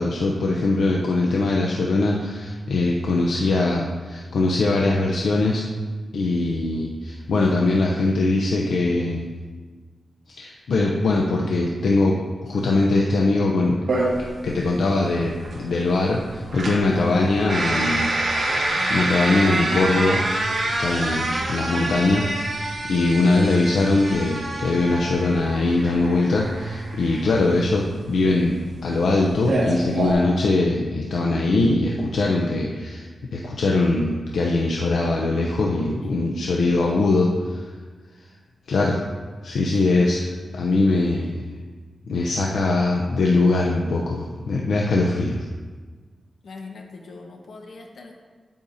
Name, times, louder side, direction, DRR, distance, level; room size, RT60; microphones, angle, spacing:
voice 1, 0.0-5.7 6.1-9.3 10.3-13.8 14.4-15.3 15.6-18.1 18.9-20.2 20.6-28.6 28.8-33.1 33.3-37.6 38.7-39.0 39.4-41.4 42.1-45.5, left 2 dB, 90° left, -1 dB, 0.6 m, -21 dB
sound 1, 13.9-30.1, right 2 dB, 60° right, 1.9 m, -27 dB
voice 2, 16.8-17.3 17.7-18.0 21.1-21.7 36.0-37.1 39.7-40.7 46.4-48.1, left 3 dB, 70° left, 2 dB, 1.1 m, -41 dB
8.8 x 8.6 x 2.7 m, 1.4 s
wide cardioid pair, 160°, 0 cm